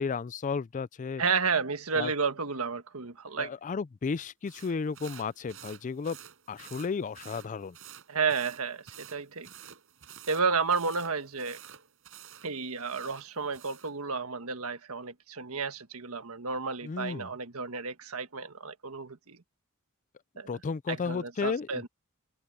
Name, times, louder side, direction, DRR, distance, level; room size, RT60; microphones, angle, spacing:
voice 1, 0.0-1.2 2.0-2.1 3.4-6.2 6.5-7.8 16.8-17.3 20.5-21.9, left 5 dB, 35° left, 0.4 m, -33 dB
voice 2, 1.2-3.5 8.1-9.5 10.3-11.6 12.4-19.4 20.4-20.5 20.9-21.9, right 5 dB, 80° right, 1.5 m, -32 dB
sound 1, 4.5-14.0, right 9 dB, 65° right, 7.1 m, -51 dB
head